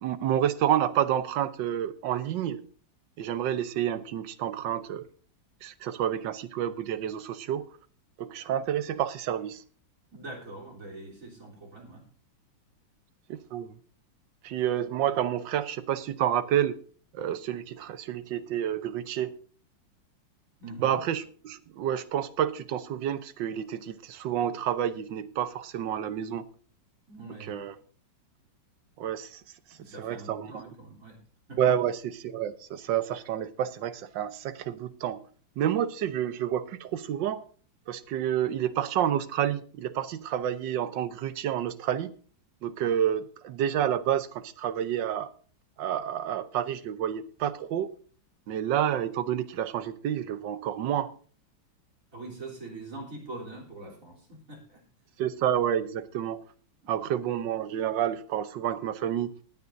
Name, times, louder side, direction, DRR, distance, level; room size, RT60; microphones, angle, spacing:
voice 1, 0.0-2.6 3.2-5.0 5.6-7.7 8.2-9.6 13.3-13.8 14.4-16.8 17.1-19.3 20.8-26.5 27.4-27.8 29.0-29.4 30.0-30.5 31.6-35.2 35.6-37.4 37.9-42.1 42.6-45.3 45.8-47.9 48.5-51.1 55.2-56.4 56.9-59.3, right 10 dB, 70° right, 1.5 m, -29 dB
voice 2, 10.1-12.0 20.6-21.0 27.1-27.6 29.8-31.2 31.5-31.6 52.1-54.8 56.8-57.0, right 2 dB, 40° right, 3.8 m, -43 dB
20.0 x 9.5 x 2.6 m
omnidirectional pair, 2.1 m